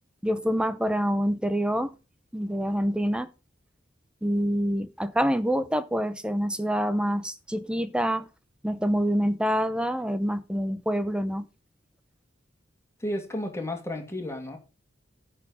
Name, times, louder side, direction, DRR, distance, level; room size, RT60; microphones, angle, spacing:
voice 1, 0.2-1.9 2.3-3.3 4.2-8.2 8.6-11.5, equal, 5° right, 0.7 m, -26 dB
voice 2, 13.0-14.6, left 1 dB, 15° left, 2.3 m, -32 dB
10.5 x 4.4 x 7.0 m
head